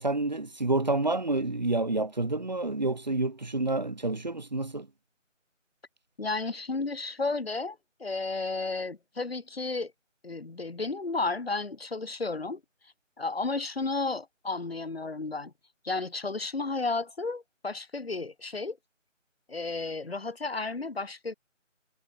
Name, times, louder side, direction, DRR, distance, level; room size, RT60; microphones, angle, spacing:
voice 1, 0.0-4.9, right 2 dB, 35° right, 1.2 m, -28 dB
voice 2, 6.2-9.9 10.2-12.6 13.2-15.5 15.8-18.8 19.5-21.3, left 3 dB, 50° left, 1.6 m, -33 dB
figure-of-eight pair, 165°, 38 cm